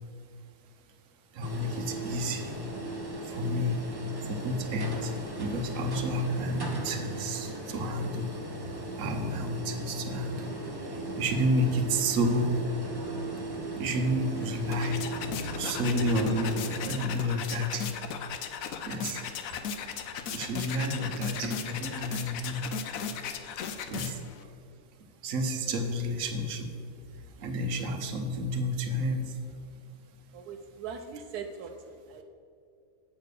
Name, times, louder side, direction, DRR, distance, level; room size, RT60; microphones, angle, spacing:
voice 1, 1.3-2.5 3.3-3.8 4.2-5.1 5.4-8.3 9.0-10.5 11.2-12.6 13.8-15.0 15.5-16.6 16.8-17.9 18.8-19.2 20.3-22.7 23.9-24.2 25.2-26.7 27.4-29.3, equal, 60° right, 5 dB, 1.2 m, -30 dB
sound 1, 1.4-16.8, right 2 dB, 20° right, 0.7 m, -37 dB
sound 2, 14.4-24.4, left 7 dB, 65° left, 1.0 m, -37 dB
voice 2, 30.3-31.7 32.1-32.2, right 6 dB, 80° right, 4 dB, 1.1 m, -40 dB
8.3 x 5.7 x 6.7 m, 2.5 s
omnidirectional pair, 1.7 m